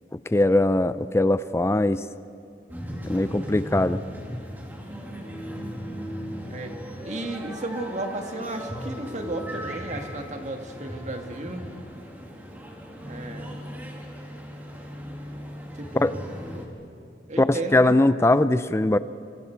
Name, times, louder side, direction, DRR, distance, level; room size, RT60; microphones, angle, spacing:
voice 1, 0.3-2.0 3.0-4.0 4.3-4.4 15.9-16.1 17.4-19.0, left 2 dB, 15° left, 14 dB, 0.4 m, -21 dB
sound 1, 2.7-16.7, equal, 10° right, 2.6 m, -37 dB
voice 2, 7.0-11.6 13.1-13.6 15.8-16.2 16.5-16.7 17.3-18.0, right 2 dB, 40° right, 4 dB, 1.9 m, -34 dB
26.5 x 26.5 x 4.6 m, 2.6 s
head